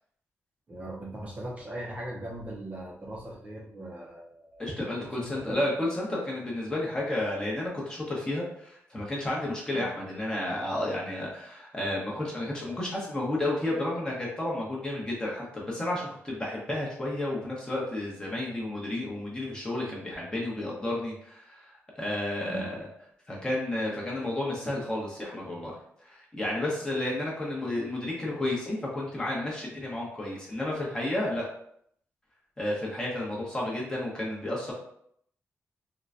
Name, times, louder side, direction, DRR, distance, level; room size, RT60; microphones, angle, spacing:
voice 1, 0.7-4.7 5.0-5.6 9.7-9.9 22.5-22.7 33.4-33.5, right 1 dB, 25° right, -4 dB, 0.5 m, -40 dB
voice 2, 4.6-22.9 23.3-25.8 26.0-31.5 32.6-34.7, left 1 dB, 15° left, -4 dB, 0.8 m, -32 dB
3.7 x 2.1 x 2.4 m, 0.69 s
wide cardioid pair, 145°, 5 cm